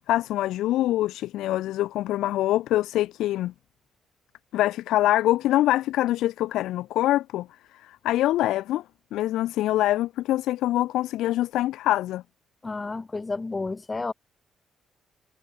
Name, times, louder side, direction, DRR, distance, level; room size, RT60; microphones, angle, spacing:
voice 1, 0.0-3.5 4.5-7.5 7.7-8.8 9.1-12.2, left 14 dB, 85° left, 0.5 m, -24 dB
voice 2, 12.6-14.1, left 3 dB, 25° left, 2.5 m, -31 dB
cardioid pair, 90°, 0 cm